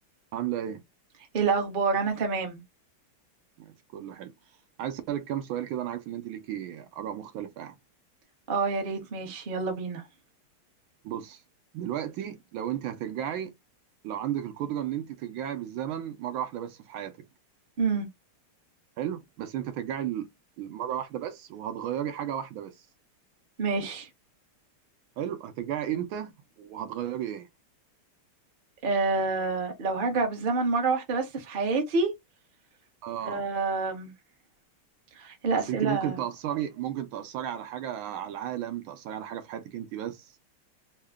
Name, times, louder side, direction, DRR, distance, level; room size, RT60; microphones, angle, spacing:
voice 1, 0.3-0.8 3.6-4.3 4.8-7.7 11.0-11.4 11.7-13.5 14.0-17.2 19.0-20.3 20.6-22.9 25.2-26.3 26.6-27.5 33.0-33.5 35.5-40.3, right 11 dB, 75° right, 1.3 m, -34 dB
voice 2, 1.3-2.6 8.5-10.0 17.8-18.1 23.6-24.1 28.8-32.1 33.3-34.1 35.2-36.2, right 4 dB, 45° right, 0.7 m, -27 dB
3.6 x 2.1 x 3.4 m
omnidirectional pair, 2.4 m